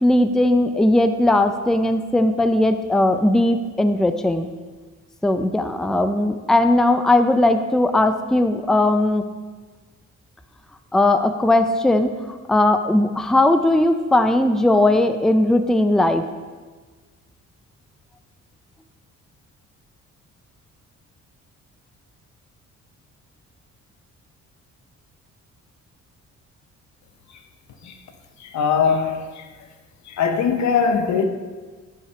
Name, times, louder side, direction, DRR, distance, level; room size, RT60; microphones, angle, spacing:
voice 1, 0.0-4.5 5.2-9.2 10.9-16.2, left 1 dB, ahead, 0.5 m, -18 dB
voice 2, 28.5-29.3 30.2-31.2, left 6 dB, 65° left, 1.1 m, -20 dB
9.7 x 4.9 x 5.8 m
cardioid pair, 90°, 30 cm